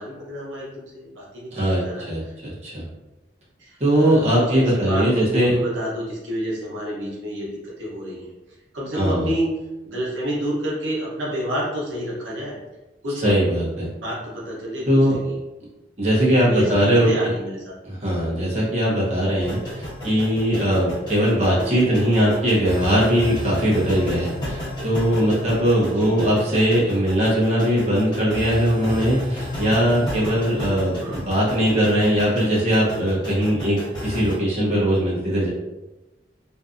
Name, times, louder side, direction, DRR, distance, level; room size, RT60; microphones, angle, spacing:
voice 1, 0.0-2.3 3.6-8.3 8.7-9.5 9.8-12.5 13.0-13.3 14.0-15.4 16.4-17.7 21.6-21.8 25.8-26.3 30.9-31.2, equal, 90° right, -5 dB, 0.8 m, -29 dB
voice 2, 1.5-2.9 3.8-5.6 8.9-9.3 13.2-13.9 14.9-15.2 16.0-17.1 17.8-35.5, equal, 35° right, -6 dB, 0.7 m, -20 dB
sound 1, 19.4-34.3, left 1 dB, 20° left, 1.1 m, -32 dB
2.6 x 2.3 x 2.4 m, 1.0 s
head